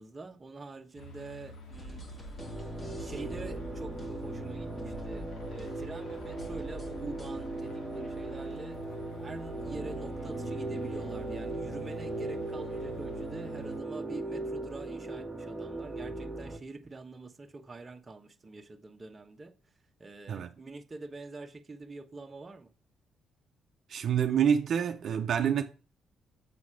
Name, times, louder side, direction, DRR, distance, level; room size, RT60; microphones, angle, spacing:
voice 1, 0.0-2.3 3.0-8.8 9.2-19.5 20.0-22.7, right 3 dB, 25° right, 1.1 m, -45 dB
sound 1, 1.0-13.8, left 2 dB, 75° left, 1.4 m, -49 dB
sound 2, 1.7-7.6, equal, 30° left, 1.9 m, -46 dB
sound 3, 2.4-16.6, right 2 dB, ahead, 1.7 m, -38 dB
voice 2, 23.9-25.6, right 8 dB, 60° right, 0.7 m, -27 dB
7.6 x 4.1 x 4.8 m
cardioid pair, 90°, 0 cm